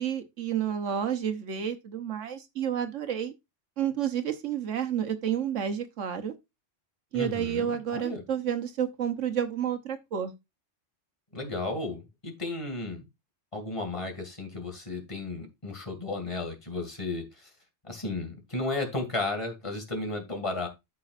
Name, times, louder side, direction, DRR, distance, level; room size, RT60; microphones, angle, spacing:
voice 1, 0.0-3.3 3.8-6.3 7.1-10.3, right 9 dB, 75° right, 1.2 m, -30 dB
voice 2, 7.1-8.2 11.3-13.1 13.5-17.5 17.8-20.7, left 2 dB, 25° left, 2.3 m, -34 dB
13.0 x 5.8 x 2.5 m
omnidirectional pair, 1.3 m